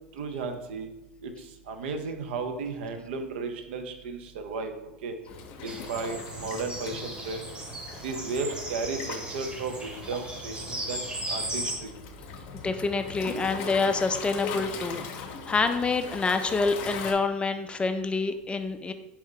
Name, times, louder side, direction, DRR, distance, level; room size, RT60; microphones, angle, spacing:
voice 1, 0.1-0.9 1.2-1.3 1.7-4.7 5.0-5.1 5.6-7.4 8.0-11.9, right 4 dB, 65° right, 7 dB, 0.6 m, -34 dB
Waves surf, 5.3-17.1, left 5 dB, 55° left, 0.6 m, -40 dB
sound 1, 5.7-11.8, right 1 dB, 15° right, 0.9 m, -37 dB
voice 2, 12.6-18.9, left 4 dB, 15° left, 8 dB, 0.3 m, -27 dB
4.3 x 2.6 x 3.8 m, 0.99 s
hypercardioid pair, 85°, 6 cm